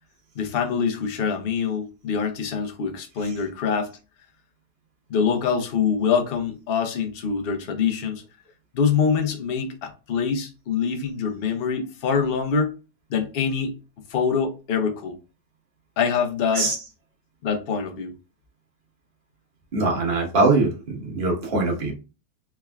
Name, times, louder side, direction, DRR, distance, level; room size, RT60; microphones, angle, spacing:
voice 1, 0.3-4.0 5.1-8.2 8.7-12.7 13.1-13.7 14.1-15.2 16.0-16.7 17.4-18.1, left 6 dB, 50° left, 0.7 m, -24 dB
voice 2, 19.7-21.9, right 3 dB, 35° right, 1.2 m, -22 dB
3.5 x 3.3 x 2.3 m
omnidirectional pair, 1.7 m